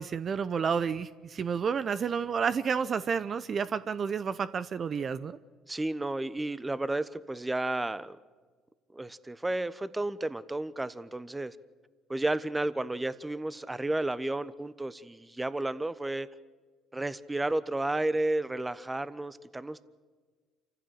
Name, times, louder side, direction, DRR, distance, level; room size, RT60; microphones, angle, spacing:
voice 1, 0.0-5.4, right 6 dB, 45° right, 14 dB, 0.7 m, -30 dB
voice 2, 5.7-8.2 8.9-11.6 12.1-16.3 16.9-19.8, right 2 dB, 15° right, 16 dB, 1.1 m, -32 dB
28.5 x 15.0 x 7.8 m, 1.4 s
hypercardioid pair, 65°, 0 cm